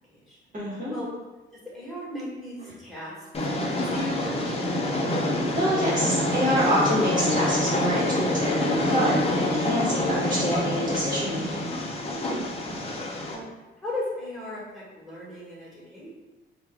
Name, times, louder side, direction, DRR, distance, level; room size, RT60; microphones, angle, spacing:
voice 1, 0.5-0.9 4.9-5.1 5.5-11.8, equal, 40° right, -7 dB, 1.2 m, -27 dB
voice 2, 1.5-3.1 3.6-4.5 12.1-13.4 13.8-16.1, left 1 dB, ahead, -7 dB, 1.4 m, -37 dB
Train, 3.3-13.3, left 1 dB, 30° left, 0.6 m, -26 dB
3.1 x 2.3 x 3.5 m, 1.1 s
cardioid pair, 90°, 20 cm